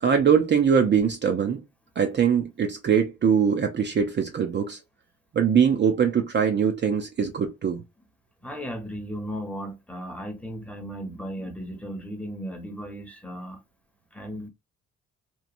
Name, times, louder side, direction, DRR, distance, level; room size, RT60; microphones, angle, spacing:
voice 1, 0.0-1.6 2.0-4.8 5.3-7.8, right 7 dB, 35° right, 0.5 m, -22 dB
voice 2, 8.4-13.6 14.1-14.5, equal, 5° left, 0.8 m, -36 dB
3.0 x 2.2 x 2.4 m
cardioid pair, 90°, 30 cm